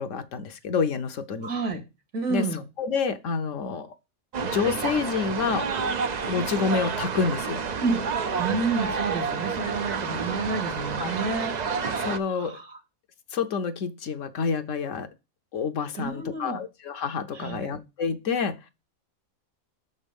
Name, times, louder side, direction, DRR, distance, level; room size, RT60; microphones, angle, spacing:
voice 1, 0.0-1.5 2.3-2.5 2.8-3.9 4.5-5.7 6.3-7.6 11.0-11.2 12.0-12.6 13.3-15.1 15.5-18.7, left 5 dB, 65° left, 1.1 m, -28 dB
voice 2, 1.4-1.8 2.1-2.6 7.8-8.0 8.4-11.5 12.3-12.8 16.0-16.6 17.3-17.7, right 3 dB, 75° right, 2.7 m, -29 dB
sound 1, 4.3-12.2, right 5 dB, 55° right, 0.4 m, -29 dB
6.6 x 5.4 x 5.2 m
omnidirectional pair, 1.5 m